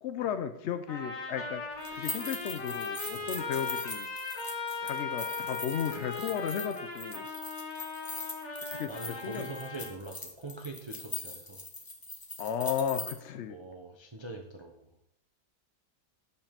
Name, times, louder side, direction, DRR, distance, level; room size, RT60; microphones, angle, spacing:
voice 1, 0.0-1.6 1.9-4.1 4.8-7.3 8.7-9.6 12.4-13.6, left 8 dB, 85° left, 9 dB, 0.6 m, -34 dB
Trumpet, 0.9-9.9, left 4 dB, 50° left, 1.8 m, -38 dB
sound 1, 1.8-13.1, left 3 dB, 25° left, 0.5 m, -41 dB
voice 2, 8.9-11.6 13.5-14.8, right 2 dB, 40° right, 2 dB, 0.4 m, -43 dB
7.0 x 5.4 x 5.8 m, 0.77 s
omnidirectional pair, 1.9 m